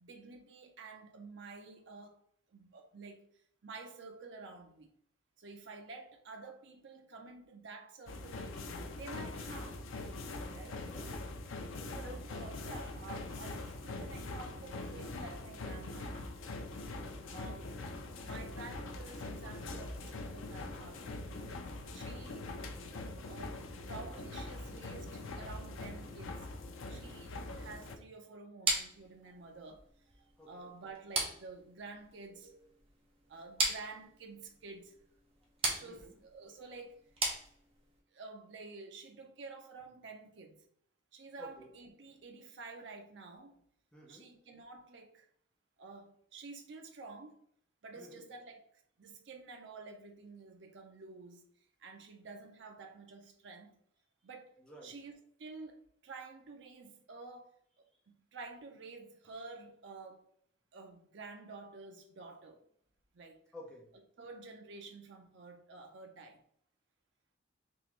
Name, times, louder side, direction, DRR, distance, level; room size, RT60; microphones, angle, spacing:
voice 1, 0.0-2.2 2.5-3.3 3.6-4.9 5.4-8.5 8.9-9.8 10.5-10.9 11.9-16.7 17.3-17.7 18.2-21.6 21.9-22.5 23.3-26.5 26.9-29.8 30.1-32.8 33.3-35.0 35.7-37.1 38.1-40.6 41.1-43.6 44.1-45.3 45.8-47.4 47.8-48.6 49.0-51.5 51.8-53.8 54.2-54.5 54.8-57.5 58.1-60.2 60.7-62.6 63.1-63.4 64.2-66.4, right 3 dB, 60° right, 0.5 m, -50 dB
sound 1, 8.1-28.0, left 2 dB, 80° left, 0.5 m, -43 dB
voice 2, 11.7-12.2 16.9-17.3 30.4-30.7 35.8-36.1 41.4-41.7 43.9-44.3 48.0-48.2 54.6-54.9 63.5-63.9, left 1 dB, 5° left, 0.8 m, -52 dB
sound 2, 28.7-38.0, right 2 dB, 30° right, 0.7 m, -38 dB
3.6 x 2.8 x 3.0 m
head